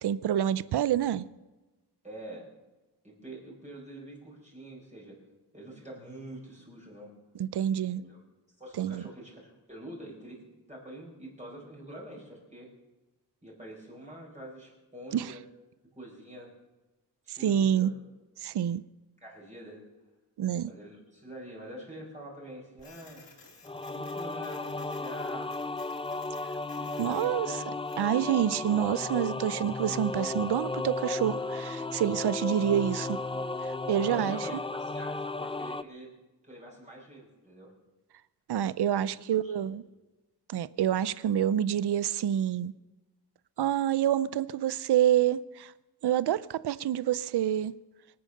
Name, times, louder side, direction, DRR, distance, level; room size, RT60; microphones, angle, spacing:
voice 1, 0.0-1.3 7.4-8.0 8.8-9.0 15.1-15.3 17.3-17.9 18.4-18.8 20.4-20.7 27.0-27.6 28.0-33.2 33.6-34.5 38.5-39.8 40.5-42.7 43.6-45.7 46.0-47.7, right 10 dB, 70° right, 0.6 m, -27 dB
voice 2, 2.0-2.5 3.0-5.2 5.5-7.1 7.9-8.2 8.6-12.7 13.4-15.4 15.9-16.5 17.2-17.9 19.2-19.8 20.6-23.2 23.9-25.6 26.8-27.8 34.0-36.1 36.4-37.7 39.0-39.8, right 1 dB, 15° right, 4.6 m, -46 dB
Printer, 22.8-28.1, left 3 dB, 90° left, 4.1 m, -55 dB
sound 1, 23.6-35.8, left 2 dB, 15° left, 0.4 m, -34 dB
24.5 x 8.7 x 6.5 m
wide cardioid pair, 120°, 42 cm